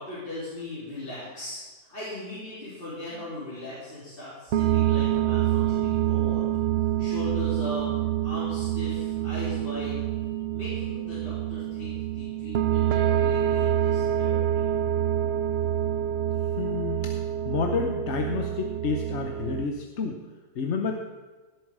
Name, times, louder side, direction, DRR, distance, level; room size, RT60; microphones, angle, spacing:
voice 1, 0.0-1.6 1.9-6.4 7.0-7.9 8.2-10.0 10.5-14.6, left 2 dB, 35° left, -10 dB, 3.8 m, -38 dB
sound 1, 4.5-19.7, right 11 dB, 70° right, 0.6 m, -26 dB
voice 2, 16.6-17.1 17.4-20.2 20.6-20.9, left 5 dB, 55° left, 4 dB, 1.1 m, -29 dB
17.5 x 7.9 x 4.8 m, 1.3 s
omnidirectional pair, 1.6 m